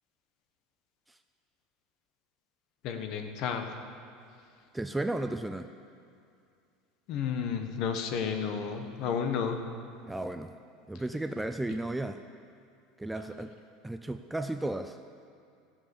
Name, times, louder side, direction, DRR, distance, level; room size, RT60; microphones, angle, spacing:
voice 1, 2.8-3.7 7.1-9.6 13.3-13.4, left 7 dB, 50° left, 6 dB, 1.2 m, -32 dB
voice 2, 4.7-5.7 10.1-10.5 10.9-12.2 13.0-13.5 13.8-15.0, right 2 dB, 5° right, 8 dB, 0.3 m, -34 dB
15.0 x 7.4 x 7.1 m, 2.4 s
supercardioid pair, 150°, 0 cm